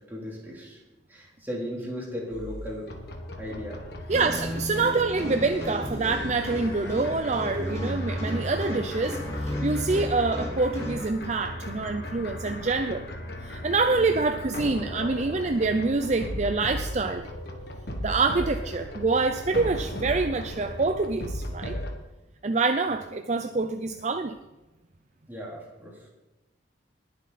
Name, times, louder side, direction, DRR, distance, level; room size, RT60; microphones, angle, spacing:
voice 1, 0.1-0.8 1.1-2.9 3.4-3.8 4.2-4.4 13.9-14.2 25.3-26.0, equal, 10° right, -4 dB, 3.5 m, -36 dB
sound 1, 2.3-21.9, left 1 dB, 55° left, 1.6 m, -37 dB
sound 2, 4.1-11.0, left 1 dB, 15° left, 3.7 m, -33 dB
voice 2, 4.1-13.1 13.4-17.3 18.0-21.8 22.4-24.4, right 3 dB, 35° right, 8 dB, 0.5 m, -26 dB
20.0 x 7.6 x 4.2 m, 1.0 s
head